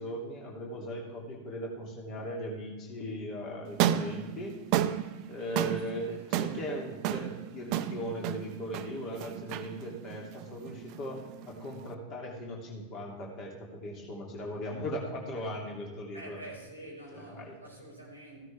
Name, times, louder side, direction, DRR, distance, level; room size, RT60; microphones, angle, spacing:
voice 1, 0.0-4.5 5.3-16.4 17.1-17.6, equal, 35° left, 0 dB, 2.8 m, -38 dB
sound 1, 3.7-11.9, right 11 dB, 40° right, 0.6 m, -33 dB
voice 2, 5.6-6.2 16.1-18.4, right 1 dB, 85° left, -4 dB, 4.9 m, -47 dB
15.5 x 12.5 x 3.5 m, 1.3 s
figure-of-eight pair, 90°, 0 cm